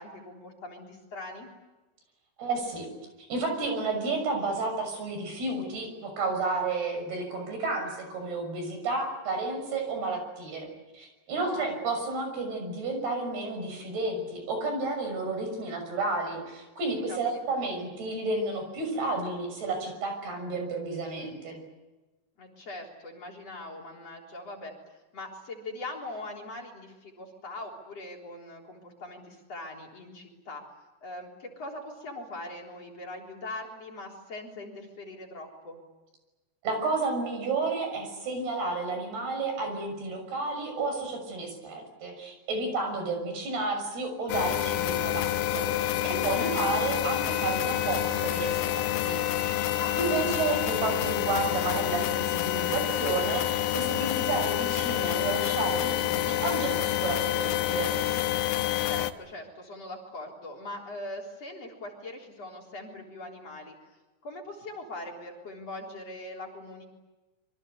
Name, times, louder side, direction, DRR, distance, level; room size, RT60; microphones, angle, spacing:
voice 1, 0.0-1.5 11.4-11.8 17.1-17.7 22.4-30.6 31.0-35.8 46.4-46.8 49.8-50.3 58.8-63.8 64.2-66.9, left 2 dB, 40° left, 0 dB, 4.6 m, -41 dB
voice 2, 2.4-2.9 3.3-21.6 36.6-49.7 50.0-57.9, right 3 dB, 70° right, 5 dB, 8.3 m, -31 dB
sound 1, 44.3-59.1, left 13 dB, 75° left, 2.9 m, -28 dB
27.0 x 24.5 x 8.3 m, 1.1 s
omnidirectional pair, 4.7 m